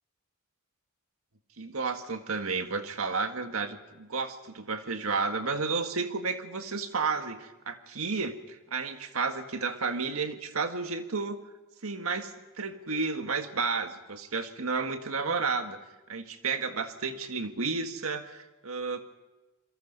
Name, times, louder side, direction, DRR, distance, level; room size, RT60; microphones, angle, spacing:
voice 1, 1.6-11.4 11.8-15.8 16.1-19.2, right 4 dB, 90° right, 7 dB, 1.8 m, -32 dB
27.5 x 22.0 x 5.5 m, 1.1 s
head